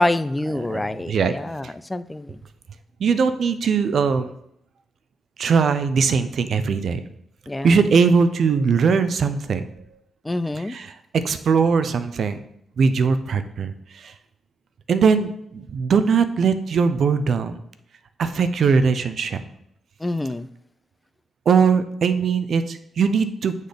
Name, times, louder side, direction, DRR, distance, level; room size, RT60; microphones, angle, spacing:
voice 1, 0.0-2.4 7.5-7.8 10.2-10.8 20.0-20.5, left 2 dB, 15° left, 0.3 m, -26 dB
voice 2, 0.7-1.3 3.0-4.3 5.4-7.0 7.6-9.7 10.7-10.9 11.1-12.4 12.8-14.1 14.9-17.6 18.2-19.4 21.5-23.5, right 5 dB, 60° right, 0.5 m, -20 dB
8.2 x 4.0 x 3.5 m
cardioid pair, 85°, 0 cm